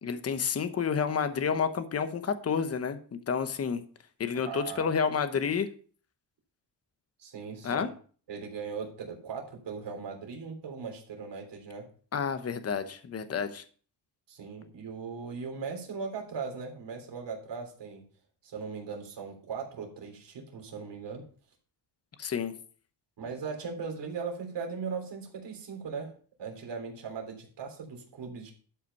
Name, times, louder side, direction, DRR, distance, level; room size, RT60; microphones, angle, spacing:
voice 1, 0.0-3.8 4.2-5.7 7.6-7.9 12.1-13.6 22.2-22.5, left 6 dB, 35° left, 10 dB, 1.0 m, -30 dB
voice 2, 4.5-4.9 7.2-7.9 8.3-11.9 14.3-18.0 18.4-21.3 23.2-26.1 26.4-28.5, right 5 dB, 70° right, 2 dB, 3.6 m, -39 dB
12.0 x 5.8 x 5.4 m, 0.42 s
wide cardioid pair, 155°, 43 cm